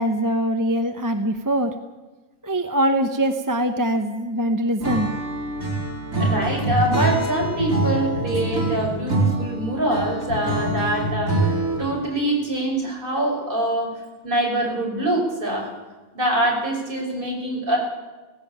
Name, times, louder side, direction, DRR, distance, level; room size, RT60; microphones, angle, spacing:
voice 1, 0.0-1.7 2.4-5.1, right 1 dB, 15° right, 5 dB, 0.9 m, -23 dB
Acoustic guitar / Strum, 4.8-12.0, right 3 dB, 80° right, 5.0 m, -25 dB
voice 2, 6.2-15.7 16.1-17.8, right 1 dB, 40° right, -1 dB, 6.2 m, -24 dB
sound 1, 6.4-9.1 9.8-9.9 10.3-11.6, left 3 dB, 50° left, 1.7 m, -30 dB
17.5 x 16.5 x 8.9 m, 1.2 s
omnidirectional pair, 1.4 m